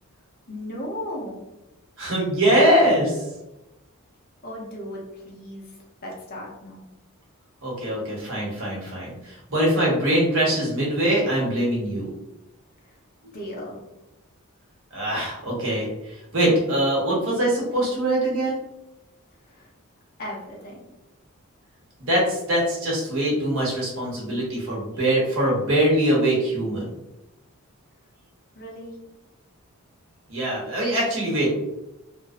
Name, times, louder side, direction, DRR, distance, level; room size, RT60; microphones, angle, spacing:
voice 1, 0.5-1.5 4.4-5.7 6.0-6.9 12.8-12.9 13.3-13.9 19.5-19.7 20.2-20.9 28.5-28.9, left 1 dB, 45° left, -3 dB, 0.7 m, -36 dB
voice 2, 2.0-3.2 7.6-12.1 14.9-18.6 22.0-26.9 30.3-31.5, right 1 dB, 65° right, -4 dB, 1.0 m, -23 dB
2.5 x 2.0 x 2.5 m, 0.94 s
head